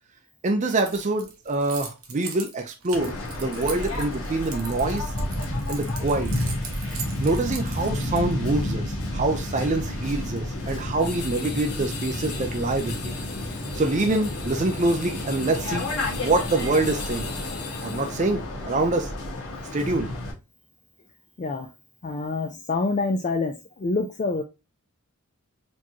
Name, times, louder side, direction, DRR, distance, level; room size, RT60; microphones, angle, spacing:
voice 1, 0.4-5.1 5.7-6.3 6.9-13.1 13.7-15.9 16.2-17.3 17.8-19.1 19.7-20.1, right 2 dB, 35° right, 0.5 m, -25 dB
Keys jangling, 0.8-8.5, right 6 dB, 75° right, 1.0 m, -40 dB
Waves surf, 2.9-20.3, left 1 dB, 70° left, 1.5 m, -31 dB
sound 1, 11.0-18.3, left 5 dB, 85° left, 1.2 m, -39 dB
voice 2, 22.0-24.4, left 3 dB, 35° left, 0.4 m, -26 dB
4.3 x 3.0 x 2.8 m
head